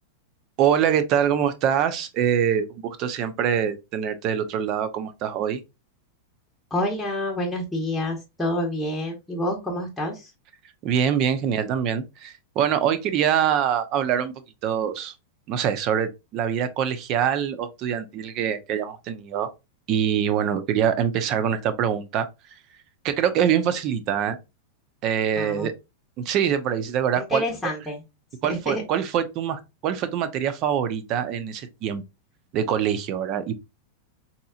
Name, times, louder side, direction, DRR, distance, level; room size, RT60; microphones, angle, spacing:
voice 1, 0.6-5.6 10.8-14.3 14.6-15.1 15.5-19.5 19.9-22.3 23.0-24.4 25.0-25.7 26.2-27.4 28.4-32.0 32.5-33.5, right 8 dB, 40° right, 0.7 m, -24 dB
voice 2, 6.7-10.3 25.4-25.7 27.2-28.0 28.4-28.8, left 1 dB, 5° left, 1.1 m, -28 dB
3.9 x 2.9 x 2.4 m
hypercardioid pair, 130°, 0 cm